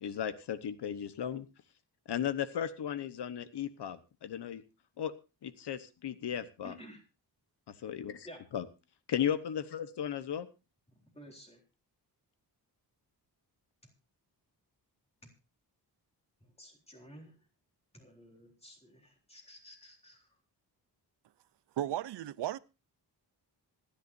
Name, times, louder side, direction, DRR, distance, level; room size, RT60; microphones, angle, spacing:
voice 1, 0.0-1.5 2.1-4.6 5.0-5.1 5.4-6.7 7.8-8.3 8.5-8.6 9.1-10.5, left 9 dB, 75° left, 1.1 m, -35 dB
voice 2, 6.6-7.0 8.2-8.4 11.0-11.6 15.2-15.3 16.4-17.4 17.9-20.3, equal, 15° left, 3.8 m, -53 dB
voice 3, 21.8-22.6, right 12 dB, 80° right, 0.6 m, -34 dB
26.0 x 10.0 x 2.6 m
wide cardioid pair, 175°, 41 cm